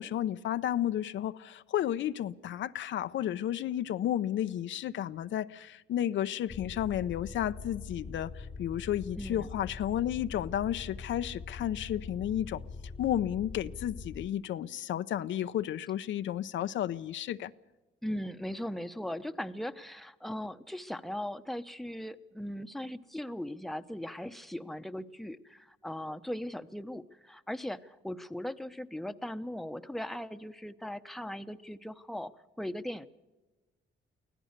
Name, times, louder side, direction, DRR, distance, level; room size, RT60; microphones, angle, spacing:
voice 1, 0.0-8.3 8.6-12.6 13.0-17.5, left 11 dB, 70° left, 0.7 m, -32 dB
sound 1, 6.5-14.3, left 4 dB, 25° left, 1.0 m, -43 dB
voice 2, 9.1-9.5 18.0-32.3 32.6-33.1, left 1 dB, ahead, 0.9 m, -39 dB
24.5 x 16.5 x 6.6 m
cardioid pair, 90°, 20 cm